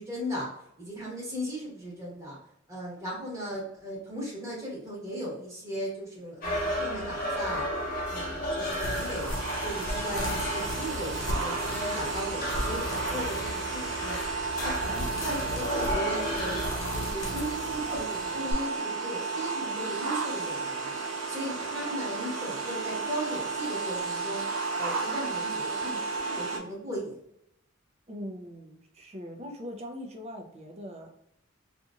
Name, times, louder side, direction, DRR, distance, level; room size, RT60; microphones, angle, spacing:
voice 1, 0.0-2.4 2.7-7.7 8.1-9.3 9.6-14.2 14.6-16.6 16.9-20.9 21.3-24.5 24.8-27.2, equal, 15° right, -5 dB, 1.1 m, -37 dB
sound 1, 6.4-16.7, equal, 45° left, 0.8 m, -33 dB
sound 2, 8.6-18.5, left 1 dB, 75° left, 0.8 m, -38 dB
sound 3, 8.9-26.6, right 4 dB, 75° right, 0.7 m, -33 dB
voice 2, 28.1-31.1, equal, 30° right, 2 dB, 0.5 m, -41 dB
2.8 x 2.5 x 2.3 m, 0.76 s
head